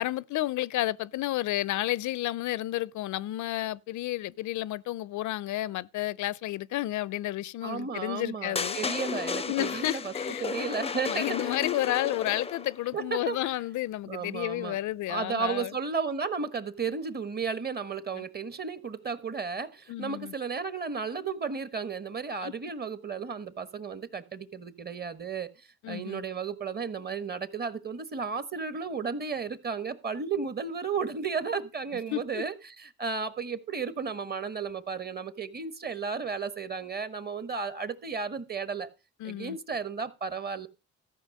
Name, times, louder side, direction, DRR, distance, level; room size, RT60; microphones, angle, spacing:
voice 1, 0.0-8.8 9.5-10.5 11.1-15.7 18.2-18.3 19.9-20.3 22.4-22.5 25.8-26.2 32.1-32.4 39.2-39.6, left 15 dB, 75° left, 0.5 m, -31 dB
voice 2, 7.6-10.1 10.4-11.6 12.9-13.4 14.1-14.8 15.1-25.5 25.9-38.9 39.2-40.7, right 5 dB, 30° right, 1.3 m, -33 dB
sound 1, 8.5-12.8, left 5 dB, 20° left, 0.5 m, -33 dB
13.5 x 5.7 x 6.5 m
cardioid pair, 90°, 30 cm